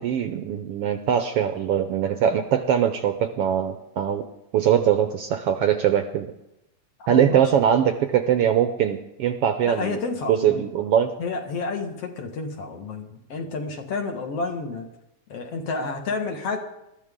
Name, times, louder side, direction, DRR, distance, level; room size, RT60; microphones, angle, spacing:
voice 1, 0.0-4.2 4.5-6.3 7.1-10.0 10.3-11.1, right 9 dB, 75° right, 8 dB, 1.4 m, -22 dB
voice 2, 7.0-7.5 9.6-10.6 11.2-14.9 15.3-16.6, left 4 dB, 60° left, 3 dB, 2.5 m, -30 dB
20.5 x 14.0 x 3.7 m, 0.89 s
omnidirectional pair, 3.3 m